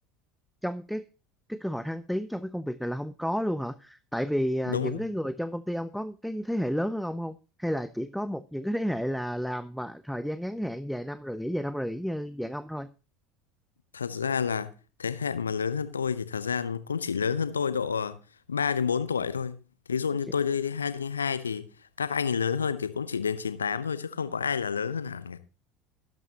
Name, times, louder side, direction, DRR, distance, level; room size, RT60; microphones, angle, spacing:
voice 1, 0.6-1.1 1.5-12.9, equal, ahead, 0.5 m, -31 dB
voice 2, 4.7-5.0 13.9-14.7 15.0-18.2 18.5-19.6 19.9-21.7 22.0-25.4, left 6 dB, 80° left, 0.8 m, -29 dB
12.0 x 10.5 x 2.8 m
figure-of-eight pair, 70°, 0 cm